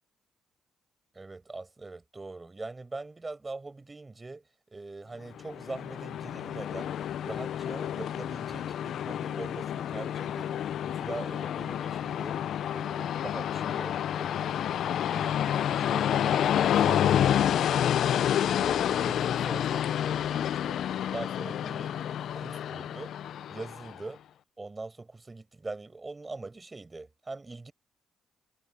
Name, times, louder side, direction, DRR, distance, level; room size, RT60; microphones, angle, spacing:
voice 1, 1.1-4.4 4.7-6.9 7.2-10.6 10.8-12.4 12.7-16.4 16.8-17.4 17.7-18.1 18.4-20.8 21.1-23.1 23.5-24.2 24.6-27.7, right 3 dB, 20° right, 5.4 m, -42 dB
Train, 5.4-24.0, left 10 dB, 70° left, 0.5 m, -29 dB
cardioid pair, 90°, 0 cm